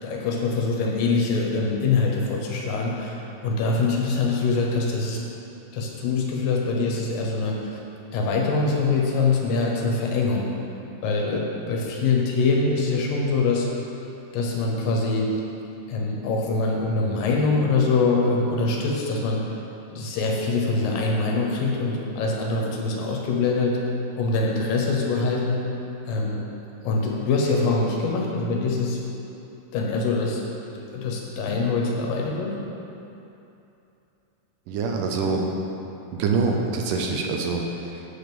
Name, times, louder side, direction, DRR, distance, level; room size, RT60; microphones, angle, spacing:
voice 1, 0.0-5.2 5.7-7.8 8.1-10.4 11.0-13.7 14.3-15.3 15.9-19.4 19.9-23.8 24.2-25.6 26.1-26.5 26.8-29.2 29.7-30.4 30.7-32.6, left 3 dB, 80° left, -1 dB, 2.7 m, -24 dB
voice 2, 34.7-35.5 36.2-38.1, right 4 dB, 75° right, 1 dB, 2.2 m, -25 dB
8.4 x 5.0 x 6.9 m, 2.9 s
omnidirectional pair, 4.0 m